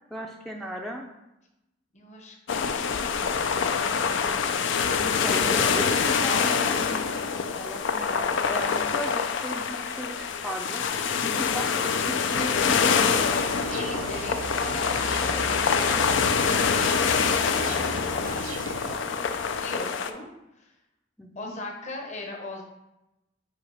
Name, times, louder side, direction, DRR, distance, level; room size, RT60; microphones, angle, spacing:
voice 1, 0.1-1.1 5.0-13.2 19.1-19.2 21.2-21.6, equal, ahead, 0 dB, 0.4 m, -36 dB
voice 2, 1.9-4.7 8.6-9.0 13.7-18.6 18.9-20.3 20.5-20.8 21.3-22.6, left 2 dB, 40° left, 1 dB, 1.1 m, -41 dB
sound 1, 2.5-20.1, left 6 dB, 70° left, 0.4 m, -25 dB
sound 2, 13.0-19.0, right 4 dB, 85° right, 0.5 m, -36 dB
8.3 x 2.8 x 4.9 m, 0.93 s
head